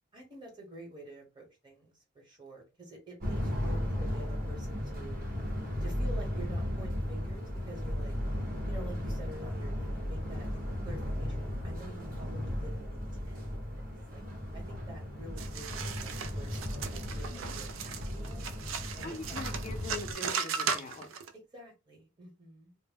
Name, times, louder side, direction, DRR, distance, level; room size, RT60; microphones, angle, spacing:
voice 1, 0.1-5.2 5.8-8.1 8.6-10.5 10.8-13.8 14.1-14.2 14.5-18.5 19.0-19.8 21.5-22.8, right 1 dB, 25° right, 1.1 m, -49 dB
sound 1, 3.2-20.1, left 1 dB, 45° right, 0.9 m, -35 dB
sound 2, 15.4-21.3, right 6 dB, 75° right, 0.4 m, -37 dB
voice 2, 17.2-17.6 19.0-21.1, left 3 dB, 35° left, 0.5 m, -43 dB
2.1 x 2.0 x 3.4 m
head